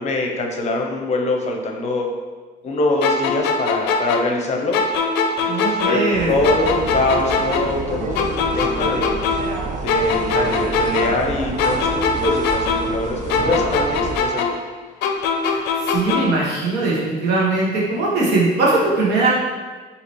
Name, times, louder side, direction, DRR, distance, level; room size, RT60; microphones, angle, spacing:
voice 1, 0.0-2.1 2.6-4.8 5.4-6.0 6.3-9.2 9.8-14.5, left 2 dB, 40° left, 2 dB, 0.6 m, -23 dB
sound 1, 3.0-6.2 6.4-9.6 9.9-13.0 13.3-16.4, left 4 dB, 90° left, 0.4 m, -22 dB
voice 2, 5.5-6.3 15.4-19.3, right 3 dB, 90° right, -5 dB, 1.2 m, -20 dB
sound 2, 6.1-14.2, right 3 dB, 50° right, 0.5 m, -28 dB
4.1 x 2.8 x 3.1 m, 1.4 s
cardioid pair, 110°, 17 cm